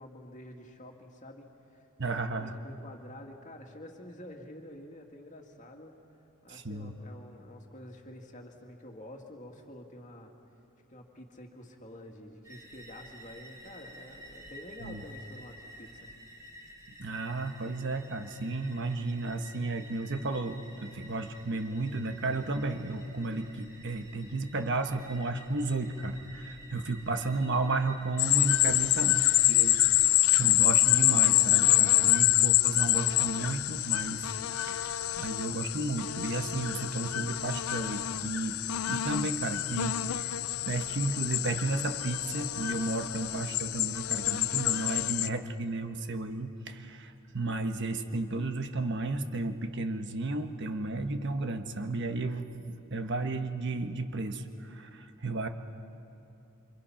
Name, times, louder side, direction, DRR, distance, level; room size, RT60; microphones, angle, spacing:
voice 1, 0.0-6.0 6.4-10.3 10.9-16.1 28.6-29.1, left 1 dB, 35° left, 2 dB, 2.3 m, -48 dB
voice 2, 2.0-2.5 6.5-6.9 14.8-15.0 17.0-29.2 29.5-30.1 30.3-34.3 34.6-38.6 38.9-40.3 40.7-55.5, right 2 dB, 55° right, 7 dB, 1.2 m, -33 dB
sound 1, 12.4-30.1, equal, 15° right, 4.6 m, -51 dB
sound 2, 28.2-45.3, left 15 dB, 85° left, 0.6 m, -27 dB
28.0 x 26.0 x 5.9 m, 2.8 s
head